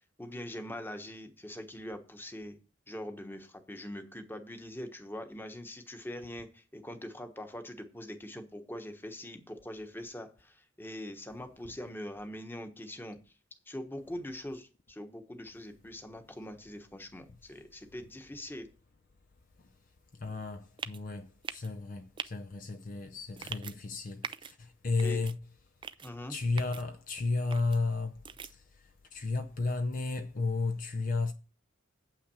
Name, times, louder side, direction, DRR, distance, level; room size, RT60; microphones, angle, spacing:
voice 1, 0.2-2.6 2.9-13.2 13.7-18.7 25.0-25.2 26.0-26.4, left 1 dB, 10° left, 1.2 m, -43 dB
voice 2, 20.1-25.4 26.3-31.3, left 3 dB, 40° left, 0.6 m, -33 dB
sound 1, 20.8-21.0 21.4-21.7 22.2-22.3 23.4-23.7 24.2-24.5 25.0-25.3 25.8-26.1 26.6-26.8 27.5-27.8 28.2-28.5, right 6 dB, 25° right, 0.4 m, -41 dB
8.4 x 5.9 x 6.9 m
head